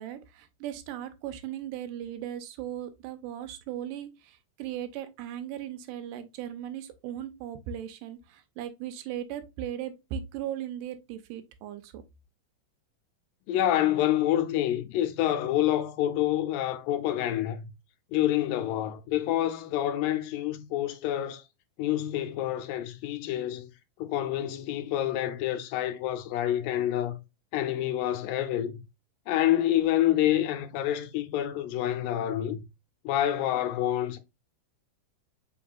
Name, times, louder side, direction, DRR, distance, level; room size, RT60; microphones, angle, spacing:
voice 1, 0.0-12.0, right 10 dB, 85° right, 2.2 m, -38 dB
voice 2, 13.5-17.7 18.1-21.4 21.8-23.7 24.0-27.2 27.5-28.8 29.3-32.7 33.0-34.2, left 12 dB, 85° left, 2.4 m, -27 dB
5.4 x 3.6 x 2.3 m
omnidirectional pair, 3.9 m